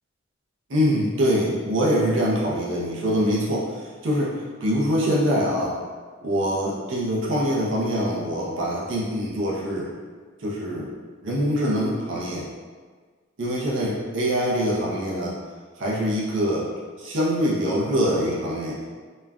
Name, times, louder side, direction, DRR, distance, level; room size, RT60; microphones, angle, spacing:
voice 1, 0.7-3.7 4.0-4.3 4.6-5.7 6.2-9.9 10.4-10.9 11.2-12.4 13.4-15.3 15.8-16.7 17.0-18.7, equal, 70° right, -5 dB, 0.6 m, -24 dB
3.1 x 2.3 x 2.2 m, 1.5 s
head